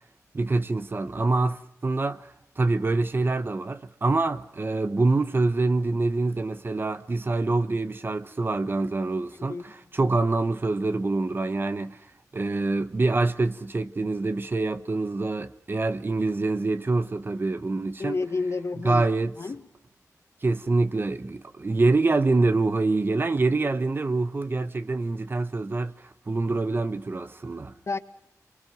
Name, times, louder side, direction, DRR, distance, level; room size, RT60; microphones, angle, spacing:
voice 1, 0.3-12.1 12.3-18.2 18.8-19.3 20.4-27.7, right 3 dB, 35° right, 1.2 m, -25 dB
voice 2, 18.0-19.1 19.4-19.7 27.9-28.0, left 3 dB, 50° left, 1.7 m, -30 dB
28.0 x 24.0 x 6.2 m
wide cardioid pair, 120°, 6 cm